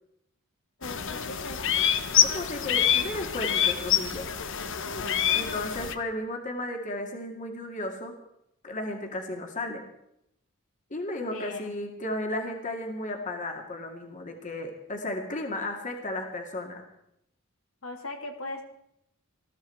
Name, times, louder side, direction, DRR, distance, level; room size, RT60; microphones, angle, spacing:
voice 1, 0.8-1.7 11.3-11.7 17.8-18.6, left 2 dB, 80° left, 3 dB, 2.5 m, -39 dB
sound 1, 0.8-6.0, left 9 dB, 65° left, 1.1 m, -26 dB
voice 2, 2.2-4.3 5.3-8.1 8.6-9.8 10.9-16.8, left 1 dB, 35° left, 3 dB, 2.2 m, -34 dB
20.0 x 14.0 x 4.6 m, 0.77 s
head